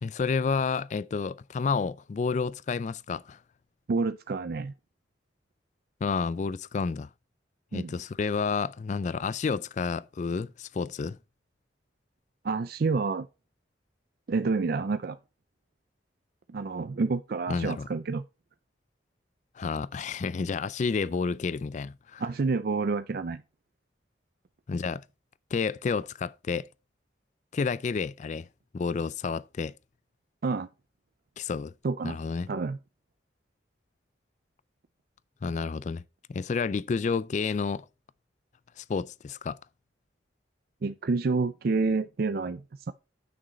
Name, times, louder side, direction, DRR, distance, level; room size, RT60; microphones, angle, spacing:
voice 1, 0.0-3.4 6.0-7.1 7.7-11.2 17.5-17.9 19.6-22.2 24.7-25.0 25.5-26.7 27.5-28.5 28.7-29.7 31.4-31.7 32.0-32.5 35.4-36.0 36.3-37.9 38.8-39.6, left 5 dB, 40° left, 0.3 m, -30 dB
voice 2, 3.9-4.7 7.7-7.9 12.4-13.3 14.3-15.2 16.5-18.2 22.2-23.4 30.4-30.7 31.8-32.2 32.5-32.8 40.8-42.9, right 4 dB, 55° right, 0.4 m, -28 dB
9.4 x 6.2 x 4.1 m
head